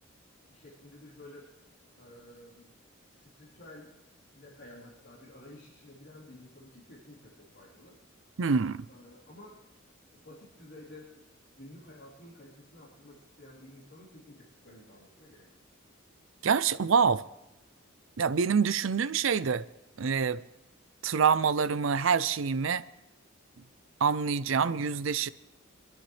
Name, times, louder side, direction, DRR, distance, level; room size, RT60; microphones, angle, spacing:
voice 1, 0.5-1.5 2.0-2.7 3.0-3.9 4.3-8.0 8.9-9.6 10.1-11.2 11.6-15.5, left 1 dB, 60° left, 3.8 m, -52 dB
voice 2, 8.4-8.9 16.4-17.2 18.2-19.6 20.0-20.4 21.0-22.8 24.0-25.3, right 6 dB, 70° right, 0.5 m, -26 dB
23.0 x 13.0 x 3.3 m
head